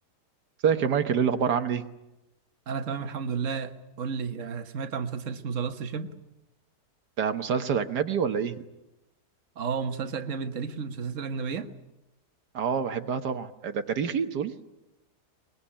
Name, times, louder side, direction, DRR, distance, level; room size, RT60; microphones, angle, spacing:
voice 1, 0.6-1.8 7.2-8.6 12.5-14.5, right 7 dB, 80° right, 1.7 m, -26 dB
voice 2, 2.7-6.1 9.5-11.7, right 6 dB, 50° right, 1.6 m, -32 dB
23.0 x 21.5 x 10.0 m
omnidirectional pair, 1.7 m